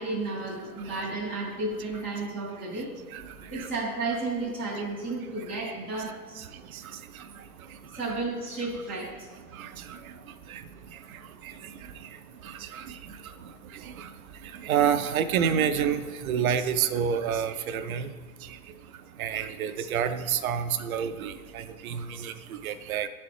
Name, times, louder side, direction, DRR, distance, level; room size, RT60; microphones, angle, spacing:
voice 1, 0.0-2.9 3.5-6.4 8.0-9.1 10.0-10.1 13.3-13.4, right 2 dB, 5° left, -10 dB, 0.4 m, -32 dB
voice 2, 14.6-18.1 19.2-22.3 22.6-23.1, right 8 dB, 65° right, 10 dB, 0.5 m, -28 dB
10.0 x 4.1 x 3.2 m, 1.4 s
hypercardioid pair, 150°, 47 cm